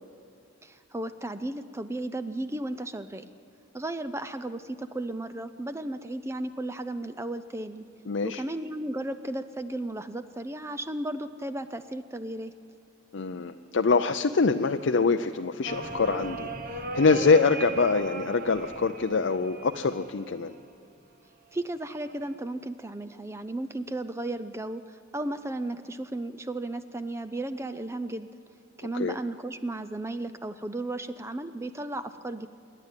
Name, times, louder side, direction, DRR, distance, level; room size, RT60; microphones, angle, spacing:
voice 1, 0.6-3.2 3.7-7.8 8.2-12.5 21.5-28.3 28.8-32.5, right 1 dB, 15° right, 11 dB, 0.5 m, -34 dB
voice 2, 8.1-8.4 13.1-16.5 16.9-20.5 29.0-29.2, left 4 dB, 60° left, 7 dB, 0.5 m, -24 dB
sound 1, 15.7-20.7 21.8-22.3, right 4 dB, 45° right, 1.3 m, -38 dB
27.0 x 11.0 x 9.0 m, 2.4 s
head